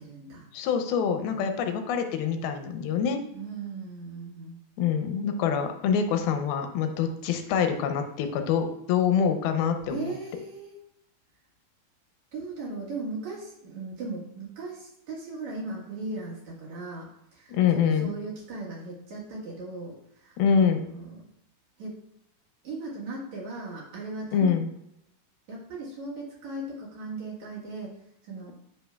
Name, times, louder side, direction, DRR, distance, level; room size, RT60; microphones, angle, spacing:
voice 1, 0.0-0.5 3.3-4.6 9.9-10.8 12.3-21.2 21.8-22.0 22.6-24.5 25.5-28.0 28.2-28.5, right 3 dB, 55° right, -4 dB, 2.6 m, -38 dB
voice 2, 0.5-3.2 4.8-10.1 17.5-18.1 20.4-20.8 24.3-24.7, left 7 dB, 80° left, 6 dB, 2.5 m, -25 dB
8.2 x 6.4 x 2.3 m, 0.79 s
omnidirectional pair, 4.4 m